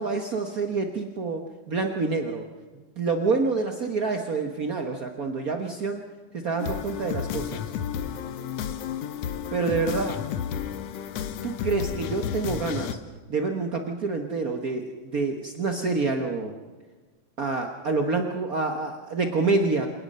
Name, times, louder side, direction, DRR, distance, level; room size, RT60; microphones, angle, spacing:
voice 1, 0.0-2.4 3.0-6.0 6.3-7.6 9.5-10.2 11.2-13.0 13.3-16.5 17.4-19.9, right 4 dB, 55° right, 4 dB, 1.0 m, -27 dB
sound 1, 6.6-12.9, left 8 dB, 65° left, 1.8 m, -32 dB
28.0 x 18.5 x 5.6 m, 1.3 s
omnidirectional pair, 3.8 m